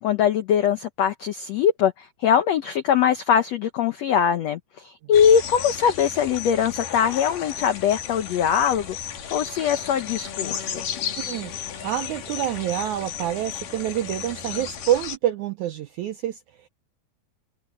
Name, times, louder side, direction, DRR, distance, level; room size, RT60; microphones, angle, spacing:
voice 1, 0.0-10.8, left 8 dB, 80° left, 1.5 m, -22 dB
sound 1, 5.1-15.2, left 9 dB, 65° left, 3.8 m, -34 dB
voice 2, 11.2-11.5 11.8-16.7, right 11 dB, 85° right, 1.7 m, -27 dB
omnidirectional pair, 4.4 m